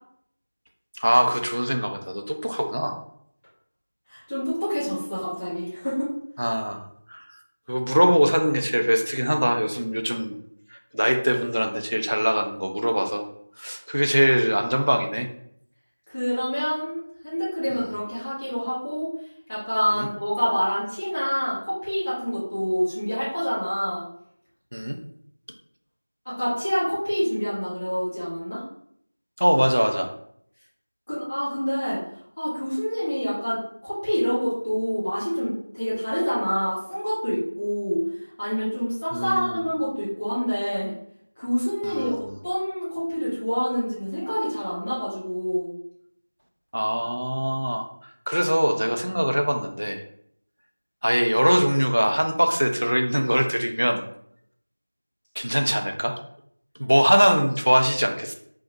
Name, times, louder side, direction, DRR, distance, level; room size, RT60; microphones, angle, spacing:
voice 1, 0.9-2.9 6.4-7.3 7.7-10.4 10.7-13.2 13.6-15.3 17.7-17.9 19.9-20.1 24.7-25.0 29.4-30.1 39.1-39.6 41.8-42.2 46.7-50.0 51.0-54.0 55.4-56.2 56.8-58.3, equal, 60° right, 4 dB, 0.5 m, -22 dB
voice 2, 4.1-6.1 16.1-19.1 19.5-24.0 26.2-28.6 31.1-32.0 32.4-38.0 38.4-40.9 41.4-45.7, equal, 20° left, -12 dB, 0.9 m, -27 dB
2.7 x 2.1 x 4.0 m, 0.68 s
figure-of-eight pair, 180°, 0 cm